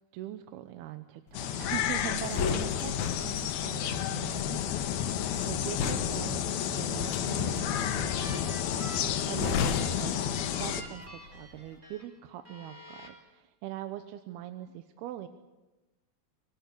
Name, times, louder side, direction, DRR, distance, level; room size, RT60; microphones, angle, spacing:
voice 1, 0.1-5.1 5.4-10.2 10.5-15.3, right 12 dB, 85° right, 9 dB, 2.9 m, -42 dB
sound 1, 1.3-10.8, left 9 dB, 80° left, 3.1 m, -31 dB
sound 2, 1.6-11.0 11.3-11.6, left 6 dB, 60° left, 2.3 m, -35 dB
sound 3, 7.2-12.0 12.5-13.1, equal, 15° right, 4.6 m, -47 dB
25.5 x 18.5 x 8.4 m, 1.1 s
omnidirectional pair, 4.4 m